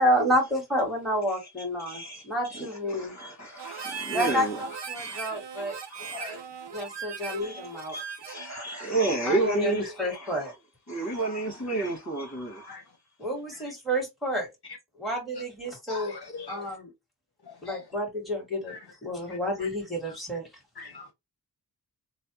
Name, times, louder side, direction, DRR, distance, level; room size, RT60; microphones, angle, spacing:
voice 1, 0.0-3.1 4.1-5.8 6.7-8.0 9.2-10.5 13.2-14.5 15.0-16.2 16.5-16.9 17.6-20.5, equal, ahead, 2.0 m, -29 dB
voice 2, 1.9-2.7 2.9-4.6 4.9-5.3 5.8-6.4 6.9-7.1 7.4-10.5 10.9-12.8, right 3 dB, 40° left, 1.7 m, -31 dB
Harmonica, 3.6-8.5, right 7 dB, 80° right, 0.6 m, -38 dB
voice 3, 11.1-11.4 11.8-11.9 12.7-12.8 15.3-15.4 15.9-16.8 17.4-17.8 18.7-18.8 19.3-19.7 20.8-21.1, left 3 dB, 65° left, 0.9 m, -41 dB
3.2 x 2.2 x 2.8 m
wide cardioid pair, 40°, 42 cm